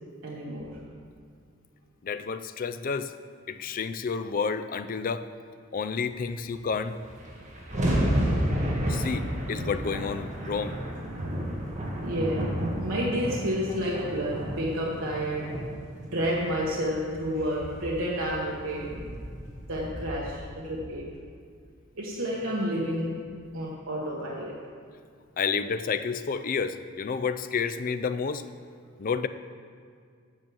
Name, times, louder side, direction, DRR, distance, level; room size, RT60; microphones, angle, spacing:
voice 1, 0.2-0.8 12.0-15.6 16.0-18.9 19.7-21.1 21.9-23.2 23.5-24.6, equal, 75° right, -4 dB, 1.2 m, -30 dB
voice 2, 2.0-3.1 3.5-5.3 5.7-7.0 8.9-10.8 25.4-28.4 29.0-29.3, left 5 dB, 40° left, 10 dB, 0.4 m, -30 dB
sound 1, 6.5-6.6 6.8-21.2, equal, 35° right, 1.6 m, -32 dB
8.9 x 6.1 x 6.9 m, 2.2 s
head